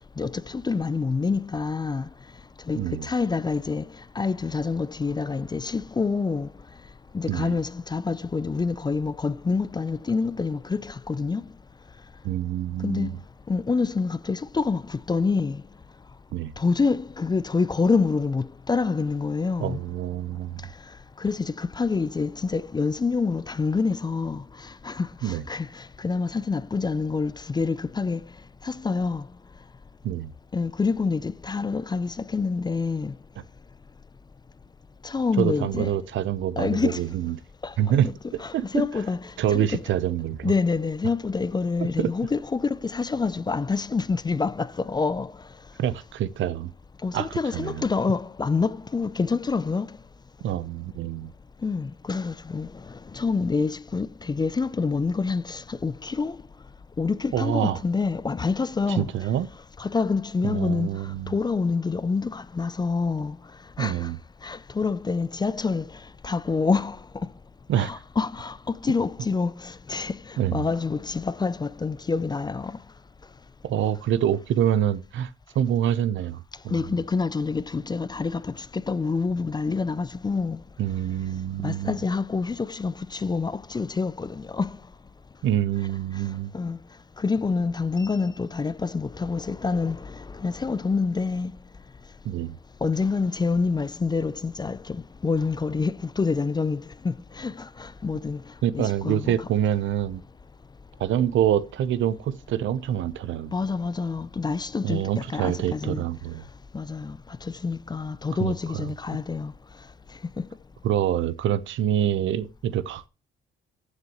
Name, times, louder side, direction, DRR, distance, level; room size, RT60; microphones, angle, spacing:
voice 1, 0.2-2.1 2.7-3.9 4.2-6.5 7.1-11.4 12.8-13.2 13.5-15.6 16.6-19.8 21.2-28.2 28.6-29.3 30.5-33.1 35.0-35.9 36.6-37.1 37.6-37.7 38.4-39.8 40.4-45.3 47.0-50.0 51.6-56.4 57.0-59.3 59.8-60.9 61.3-63.4 63.8-64.1 64.4-65.9 66.2-67.3 67.7-72.8 76.7-80.6 81.6-84.8 86.5-86.8 87.2-91.5 92.8-98.4 98.7-99.5 103.5-106.0 106.7-109.5 110.4-110.5, left 4 dB, 20° left, 0.4 m, -27 dB
voice 2, 2.8-3.1 7.3-7.6 12.2-13.2 16.3-16.5 19.6-20.6 25.2-25.4 30.0-30.3 35.4-37.3 37.8-38.1 38.5-38.9 39.4-40.5 42.0-42.1 45.8-46.7 47.1-47.8 50.4-51.3 57.3-57.8 59.0-59.5 60.4-61.3 63.8-64.2 67.7-67.9 70.4-70.6 73.6-75.3 75.5-76.8 80.8-82.0 85.4-86.5 92.2-92.5 98.6-100.2 101.0-103.5 104.8-106.4 108.4-108.8 110.8-113.1, right 10 dB, 75° right, 0.8 m, -26 dB
15.0 x 6.5 x 3.0 m
cardioid pair, 90°, 20 cm